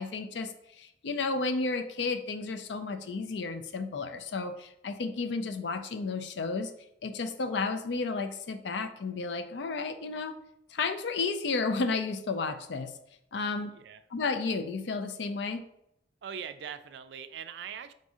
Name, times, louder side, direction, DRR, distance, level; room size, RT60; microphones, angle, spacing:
voice 1, 0.0-6.7 7.0-10.4 10.7-12.9 13.3-13.7 14.1-15.7, left 4 dB, 70° left, 8 dB, 0.5 m, -32 dB
voice 2, 16.2-17.9, right 7 dB, 65° right, 12 dB, 0.3 m, -41 dB
3.9 x 2.7 x 4.8 m, 0.77 s
head